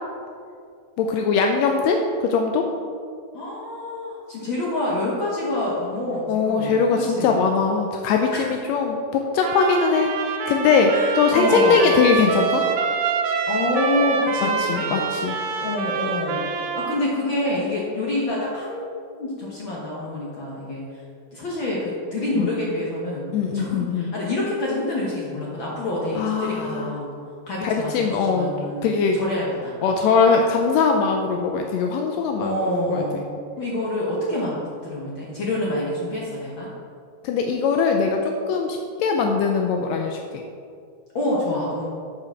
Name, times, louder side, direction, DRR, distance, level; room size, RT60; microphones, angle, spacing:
voice 1, 1.0-2.7 6.3-12.7 14.4-15.4 22.3-22.5 23.3-24.1 26.1-26.9 27.6-28.5 28.8-29.2 29.8-33.2 37.2-40.4, left 5 dB, 85° left, 3 dB, 1.5 m, -21 dB
voice 2, 3.3-6.8 7.0-7.3 8.3-8.4 10.9-12.0 13.5-15.1 15.6-18.9 19.2-21.0 21.3-23.3 23.5-27.1 27.5-29.7 32.4-33.3 33.6-36.7 41.1-41.9, left 1 dB, 60° left, -4 dB, 1.3 m, -27 dB
Trumpet, 9.4-17.0, right 5 dB, 80° right, 2.2 m, -26 dB
7.6 x 4.8 x 5.9 m, 2.3 s
omnidirectional pair, 3.6 m